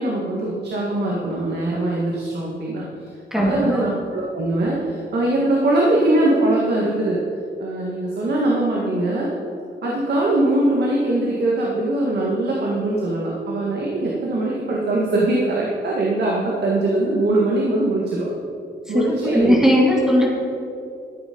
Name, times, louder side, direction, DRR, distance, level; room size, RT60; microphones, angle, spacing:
voice 1, 0.0-2.8 3.3-7.2 7.6-9.3 9.8-18.3 18.9-19.6, right 2 dB, 65° right, -3 dB, 1.9 m, -21 dB
voice 2, 3.3-3.8 18.9-19.0 19.3-20.3, equal, 5° right, -2 dB, 2.1 m, -17 dB
13.0 x 8.3 x 5.3 m, 2.5 s
wide cardioid pair, 165°, 18 cm